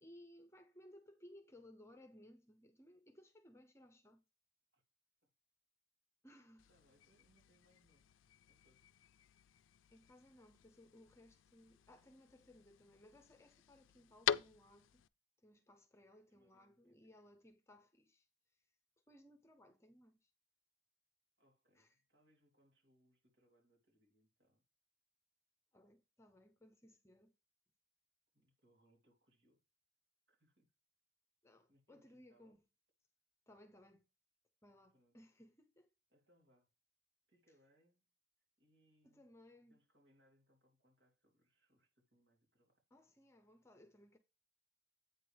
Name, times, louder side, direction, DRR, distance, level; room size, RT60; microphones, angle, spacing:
voice 1, 0.0-4.2 6.2-6.7 9.9-15.0 15.4-18.3 19.1-20.3 21.8-21.9 25.7-27.3 31.4-32.6 33.5-34.1 34.6-35.9 39.0-39.8 42.9-44.2, left 1 dB, 15° left, 0.8 m, -62 dB
sound 1, 6.6-15.1, left 9 dB, 90° left, 0.4 m, -46 dB
voice 2, 6.7-8.1 8.5-8.8 16.3-17.1 21.4-24.6 28.3-29.6 30.3-30.7 31.7-32.6 34.9-35.2 36.1-36.7 37.3-38.0 38.6-39.3 39.7-42.8, equal, 65° right, 3.6 m, -75 dB
8.6 x 4.1 x 5.1 m
head